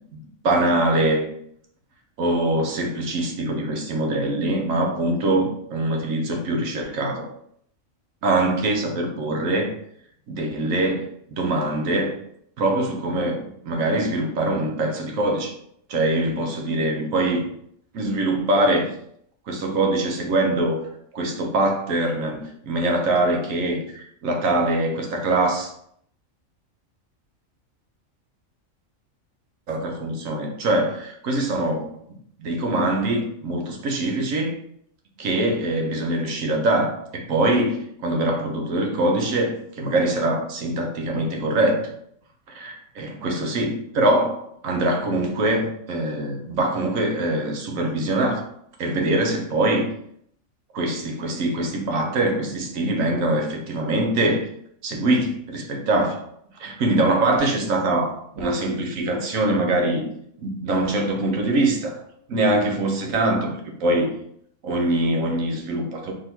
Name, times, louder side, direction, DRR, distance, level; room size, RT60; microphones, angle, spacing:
voice 1, 0.4-1.3 2.2-7.3 8.2-9.7 10.3-12.1 12.6-15.5 15.9-17.4 17.9-18.9 19.5-20.8 21.1-25.7 29.7-31.9 32.4-34.6 35.2-41.9 42.5-48.5 48.8-49.9 50.7-54.5 54.8-56.2 56.6-60.1 60.4-62.0 62.3-63.5 63.8-64.1 64.6-66.1, right 1 dB, 80° right, 2 dB, 1.3 m, -23 dB
3.7 x 3.0 x 4.4 m, 0.69 s
omnidirectional pair, 1.4 m